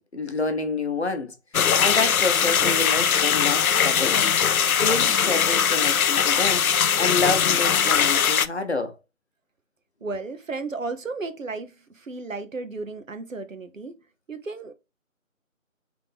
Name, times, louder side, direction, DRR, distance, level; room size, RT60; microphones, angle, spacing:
voice 1, 0.0-1.4 1.8-4.2 4.8-6.7 7.0-9.0, left 3 dB, 50° left, 0.8 m, -28 dB
sound 1, 1.5-8.5, left 7 dB, 85° left, 0.5 m, -21 dB
voice 2, 10.0-14.0 14.3-14.7, right 3 dB, 65° right, 0.9 m, -34 dB
3.8 x 3.4 x 3.4 m
figure-of-eight pair, 170°, 42 cm